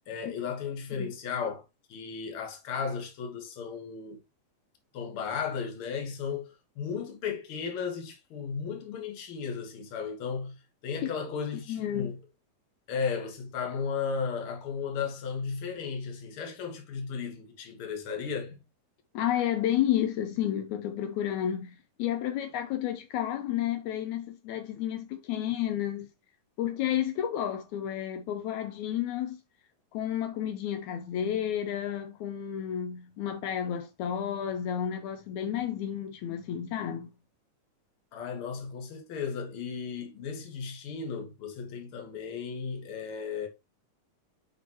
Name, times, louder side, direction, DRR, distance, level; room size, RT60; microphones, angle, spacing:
voice 1, 0.0-1.6 1.9-4.2 4.9-12.2 12.9-18.6 38.1-43.5, left 6 dB, 50° left, 2.1 m, -35 dB
voice 2, 11.7-12.1 19.1-26.1 26.6-29.4 29.9-37.1, left 10 dB, 80° left, 2.1 m, -31 dB
7.7 x 5.2 x 3.0 m
omnidirectional pair, 3.4 m